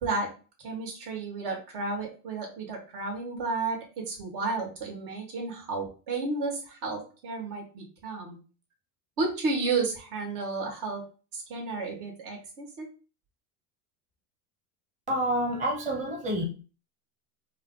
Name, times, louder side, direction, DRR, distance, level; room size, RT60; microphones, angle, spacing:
voice 1, 0.0-0.3 0.6-8.4 9.2-11.1 11.3-12.9, right 3 dB, 60° right, 1 dB, 1.7 m, -32 dB
voice 2, 15.1-16.4, equal, 15° right, -1 dB, 0.9 m, -28 dB
4.5 x 2.0 x 3.7 m, 0.36 s
supercardioid pair, 110°, 47 cm